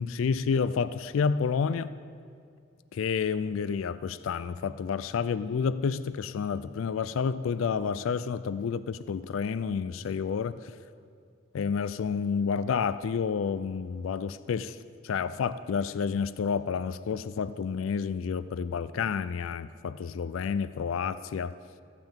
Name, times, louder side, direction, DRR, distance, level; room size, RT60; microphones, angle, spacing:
voice 1, 0.0-1.9 2.9-10.7 11.5-14.8 15.0-21.5, left 6 dB, 85° left, 15 dB, 0.4 m, -30 dB
14.5 x 5.9 x 8.8 m, 2.3 s
head